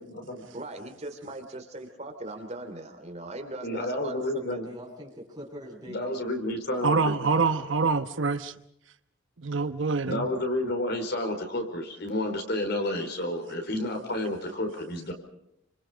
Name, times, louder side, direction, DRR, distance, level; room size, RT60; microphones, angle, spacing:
voice 1, 0.0-0.4 3.6-4.7 5.9-7.0 10.0-15.1, left 1 dB, 55° left, 5 dB, 4.7 m, -30 dB
voice 2, 0.5-4.6, right 2 dB, 35° right, 6 dB, 3.0 m, -39 dB
voice 3, 4.6-6.1 7.0-7.6 8.0-8.1, equal, 20° right, -1 dB, 7.7 m, -44 dB
voice 4, 6.8-8.5 9.4-10.3, right 4 dB, 75° right, 10 dB, 1.0 m, -25 dB
29.0 x 26.0 x 5.2 m, 0.78 s
head